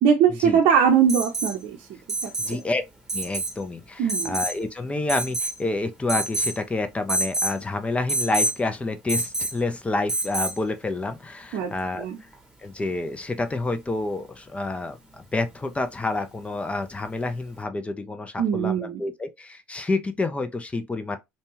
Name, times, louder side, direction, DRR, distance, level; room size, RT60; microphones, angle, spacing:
voice 1, 0.0-2.6 4.0-4.4 11.5-12.2 18.4-19.0, right 7 dB, 60° right, 0.7 m, -22 dB
Alarm, 1.1-1.6 2.1-2.6 3.1-3.5 4.1-4.6 5.1-5.6 6.1-6.6 7.1-7.6 8.1-8.6 9.1-9.6 10.1-10.6 12.3-12.4, right 1 dB, 10° right, 1.0 m, -27 dB
voice 2, 2.4-2.8 3.1-12.1 12.6-21.2, left 2 dB, 20° left, 0.5 m, -28 dB
2.7 x 2.2 x 2.8 m
hypercardioid pair, 70°, 7 cm